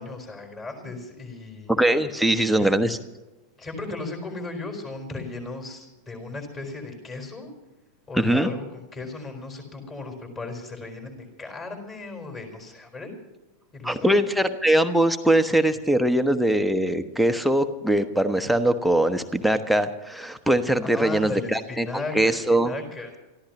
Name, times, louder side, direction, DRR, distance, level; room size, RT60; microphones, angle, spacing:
voice 1, 0.0-1.7 2.6-2.7 3.6-7.5 8.1-8.6 8.9-13.1 13.7-14.1 20.8-23.1, left 3 dB, 20° left, 3 dB, 4.4 m, -36 dB
voice 2, 1.7-3.0 8.1-8.5 13.8-22.7, right 1 dB, ahead, 12 dB, 1.1 m, -22 dB
27.5 x 14.5 x 3.0 m, 1.1 s
figure-of-eight pair, 90°, 0 cm